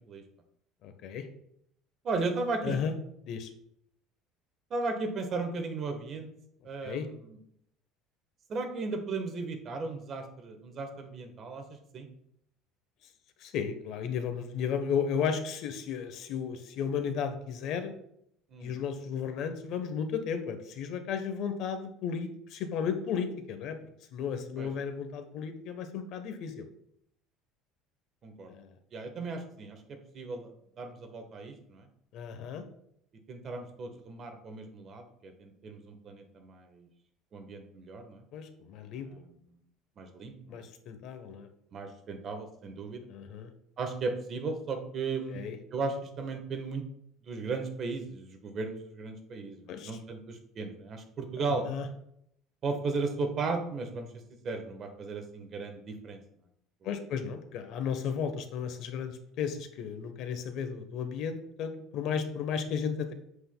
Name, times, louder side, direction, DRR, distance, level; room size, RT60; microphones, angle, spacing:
voice 1, 0.8-1.3 2.6-2.9 3.3-3.5 6.8-7.1 13.4-17.9 18.6-23.8 24.1-26.7 28.5-28.7 32.1-32.6 38.3-39.1 40.5-41.5 43.1-43.5 45.3-45.6 49.7-49.9 51.7-51.9 56.8-63.1, left 7 dB, 60° left, 9 dB, 0.9 m, -34 dB
voice 2, 2.0-2.8 4.7-6.3 6.6-7.4 8.5-11.6 11.9-12.1 18.5-18.7 24.6-24.7 28.2-28.5 28.9-30.5 30.8-31.9 33.3-36.9 37.3-38.2 38.9-39.4 40.0-40.6 41.7-43.1 43.8-45.4 45.7-46.8 47.3-51.7 52.6-54.1 54.4-56.2, right 3 dB, 35° right, 5 dB, 1.2 m, -36 dB
8.0 x 7.5 x 2.2 m, 0.72 s
cardioid pair, 140°, 0 cm